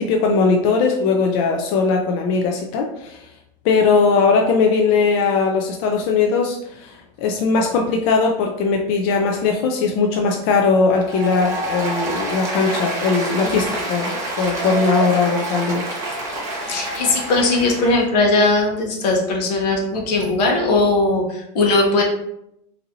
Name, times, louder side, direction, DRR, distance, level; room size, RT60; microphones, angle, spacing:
voice 1, 0.0-3.3 3.6-15.8, left 4 dB, 45° left, 1 dB, 0.4 m, -19 dB
Applause, 11.0-18.0, right 1 dB, 15° right, 1.0 m, -27 dB
voice 2, 13.2-13.6 16.7-22.0, left 2 dB, 70° left, 1 dB, 1.0 m, -19 dB
3.9 x 2.7 x 2.6 m, 0.79 s
supercardioid pair, 155°, 21 cm